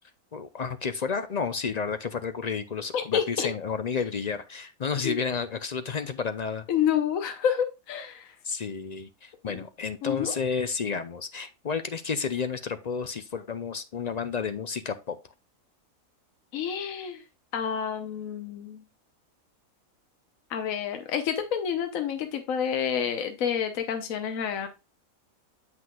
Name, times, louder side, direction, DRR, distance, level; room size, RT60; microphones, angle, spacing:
voice 1, 0.3-6.7 8.4-15.2, left 5 dB, 55° left, 10 dB, 0.4 m, -31 dB
voice 2, 2.9-3.5 5.0-5.2 6.7-8.3 9.5-9.6 10.0-10.3 16.5-17.2 17.5-18.8 20.5-24.7, left 8 dB, 75° left, 6 dB, 1.2 m, -29 dB
7.7 x 6.1 x 2.3 m, 0.27 s
omnidirectional pair, 1.4 m